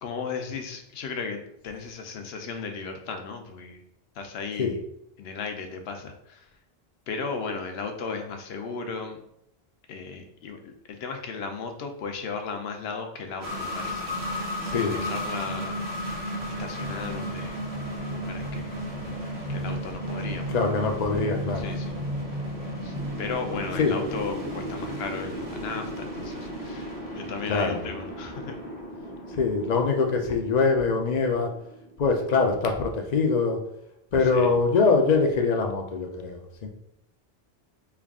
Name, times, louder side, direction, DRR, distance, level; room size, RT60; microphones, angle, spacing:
voice 1, 0.0-3.8 4.2-4.8 5.2-6.4 7.1-9.2 9.9-14.0 14.7-15.8 16.6-17.6 18.0-18.8 19.5-20.6 21.6-22.0 22.8-28.6 34.2-34.5, left 5 dB, 75° left, 5 dB, 0.8 m, -35 dB
sound 1, 13.4-31.9, equal, 60° right, 1.4 m, -34 dB
voice 2, 14.7-15.0 20.5-21.7 23.8-24.0 27.5-27.8 29.4-31.5 32.0-33.6 34.1-36.7, left 4 dB, 55° left, 3 dB, 0.5 m, -23 dB
3.4 x 2.3 x 3.5 m, 0.78 s
omnidirectional pair, 1.1 m